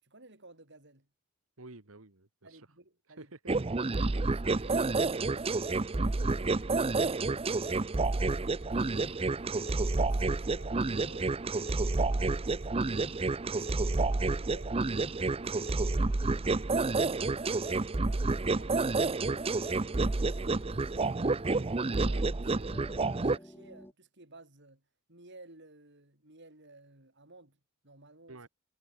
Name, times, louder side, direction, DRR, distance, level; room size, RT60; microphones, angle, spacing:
voice 1, 0.0-1.1 2.4-3.4 4.0-4.9 5.2-8.9 9.2-13.2 13.5-14.8 15.2-16.0 17.1-24.8 25.1-27.6 27.8-28.4, right 2 dB, 55° right, 6.0 m, -56 dB
voice 2, 1.6-2.7 3.1-3.9 28.3-28.5, right 2 dB, 70° right, 1.9 m, -51 dB
sound 1, 3.5-23.4, right 3 dB, 25° right, 0.6 m, -29 dB
sound 2, 18.9-23.9, equal, 10° left, 6.6 m, -53 dB
head